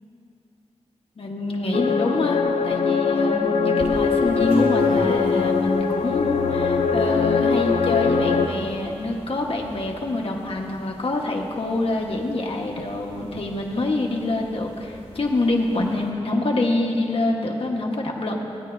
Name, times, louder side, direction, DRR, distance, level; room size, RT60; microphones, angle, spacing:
voice 1, 1.2-18.4, left 2 dB, 60° left, -1 dB, 1.1 m, -26 dB
sound 1, 1.7-8.5, left 5 dB, 90° left, 0.6 m, -21 dB
sound 2, 3.8-16.1, equal, 85° right, 2.1 m, -40 dB
16.5 x 9.5 x 2.6 m, 2.8 s
wide cardioid pair, 100°, 11 cm